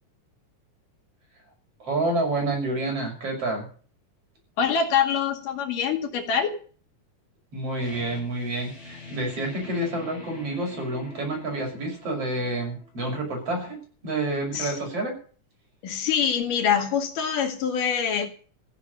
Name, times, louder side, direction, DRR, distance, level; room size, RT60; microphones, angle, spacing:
voice 1, 1.8-3.7 7.5-15.1, right 2 dB, 45° right, 2 dB, 7.3 m, -29 dB
voice 2, 4.6-6.6 14.5-14.7 15.8-18.3, left 7 dB, 90° left, 5 dB, 3.8 m, -24 dB
sound 1, 7.8-13.3, left 2 dB, 35° left, 5.2 m, -45 dB
16.0 x 7.6 x 9.9 m, 0.42 s
omnidirectional pair, 3.6 m